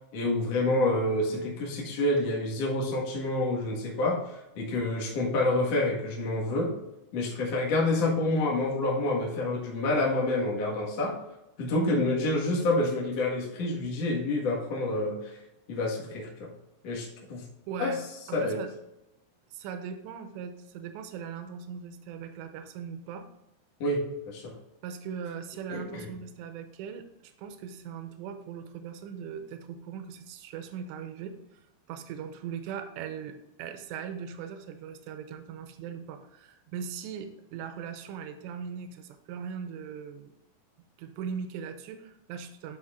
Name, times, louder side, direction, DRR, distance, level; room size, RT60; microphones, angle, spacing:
voice 1, 0.1-6.8 7.1-11.2 11.6-15.3 15.7-16.5 16.8-17.4 17.8-18.0 18.3-18.6 23.8-24.5 25.7-26.1, left 2 dB, 70° left, -3 dB, 1.5 m, -28 dB
voice 2, 17.7-18.0 18.3-18.7 19.5-23.3 24.8-31.6 31.9-40.3 41.0-42.8, right 7 dB, 80° right, 8 dB, 2.7 m, -39 dB
11.0 x 6.1 x 2.5 m, 0.90 s
omnidirectional pair, 5.6 m